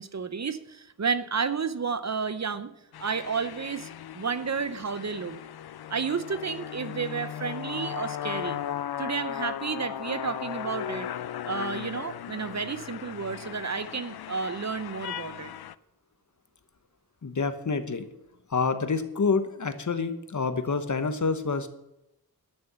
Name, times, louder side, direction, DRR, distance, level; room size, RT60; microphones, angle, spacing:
voice 1, 0.0-2.7 3.0-5.4 5.9-8.6 9.0-11.1 11.4-15.5, right 5 dB, 45° right, 13 dB, 0.7 m, -31 dB
sound 1, 2.9-15.8, left 10 dB, 75° left, 0.5 m, -37 dB
voice 2, 17.2-18.1 18.5-21.7, left 4 dB, 50° left, 10 dB, 1.0 m, -27 dB
12.5 x 6.8 x 6.9 m, 0.87 s
wide cardioid pair, 90°, 38 cm